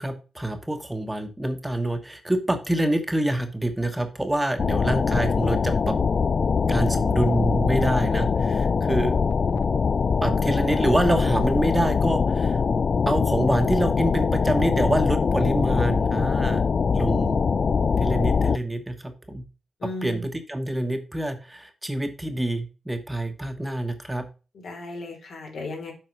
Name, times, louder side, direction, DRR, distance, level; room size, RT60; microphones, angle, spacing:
voice 1, 0.0-6.0 6.7-9.2 10.2-12.6 13.1-16.6 16.9-17.4 18.0-19.4 20.0-24.2, right 1 dB, 10° right, 6 dB, 1.2 m, -26 dB
sound 1, 4.6-18.6, left 5 dB, 50° left, 0.3 m, -23 dB
voice 2, 19.8-20.2 24.5-25.9, left 2 dB, 70° left, 1 dB, 3.3 m, -35 dB
7.7 x 4.7 x 5.3 m, 0.33 s
cardioid pair, 95°, 0 cm